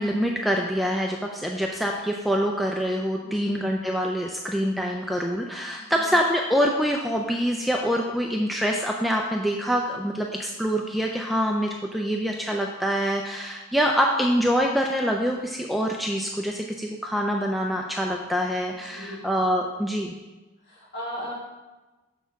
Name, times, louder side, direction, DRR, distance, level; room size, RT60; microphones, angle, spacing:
voice 1, 0.0-20.1, equal, ahead, 0 dB, 0.3 m, -25 dB
voice 2, 3.2-3.5 5.8-6.1 18.7-19.4 20.7-21.3, equal, 50° left, -5 dB, 2.4 m, -38 dB
7.0 x 6.4 x 3.5 m, 1.2 s
head